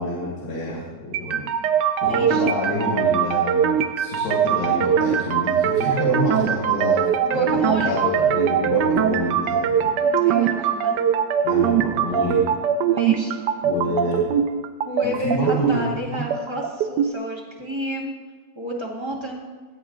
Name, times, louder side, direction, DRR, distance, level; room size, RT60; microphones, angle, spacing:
voice 1, 0.0-1.5 2.0-7.0 7.3-9.9 11.4-12.5 13.6-14.2 15.0-16.2, left 1 dB, 85° left, -4 dB, 2.5 m, -27 dB
sound 1, 1.1-17.1, right 8 dB, 80° right, 1.2 m, -22 dB
voice 2, 2.0-2.5 7.2-7.9 9.1-9.4 10.0-11.0 12.8-13.4 13.8-14.0 14.8-18.1 18.6-19.5, equal, 15° right, -3 dB, 1.8 m, -31 dB
16.5 x 7.8 x 3.8 m, 1.4 s
omnidirectional pair, 1.8 m